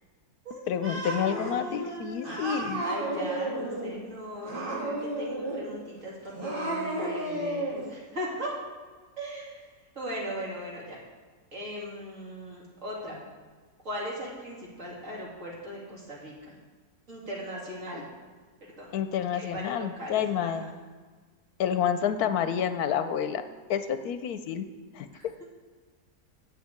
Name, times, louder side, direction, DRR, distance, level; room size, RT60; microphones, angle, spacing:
voice 1, 0.7-2.8 18.9-20.7 21.6-23.4 23.7-24.6 25.0-25.3, left 8 dB, 75° left, 10 dB, 1.1 m, -29 dB
Cat, 0.8-1.5 2.2-3.9 4.4-5.7 6.3-7.8, right 1 dB, 35° right, 2.1 m, -32 dB
voice 2, 1.2-8.5 9.2-11.0 11.5-13.2 13.8-16.5 17.1-18.0 18.8-19.0 19.3-20.7 25.1-25.4, equal, 50° right, -5 dB, 3.1 m, -39 dB
8.5 x 6.3 x 8.2 m, 1.5 s
omnidirectional pair, 1.7 m